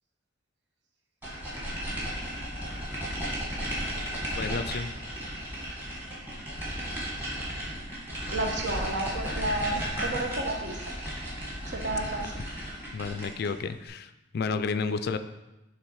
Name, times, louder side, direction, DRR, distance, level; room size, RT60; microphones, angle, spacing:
sound 1, 1.2-13.6, equal, 10° right, 1.7 m, -34 dB
voice 1, 4.4-4.9 12.9-15.2, left 5 dB, 55° left, 11 dB, 0.4 m, -31 dB
voice 2, 8.3-10.9 11.7-12.4, right 2 dB, 60° right, 1 dB, 1.0 m, -31 dB
7.3 x 3.4 x 4.6 m, 0.99 s
head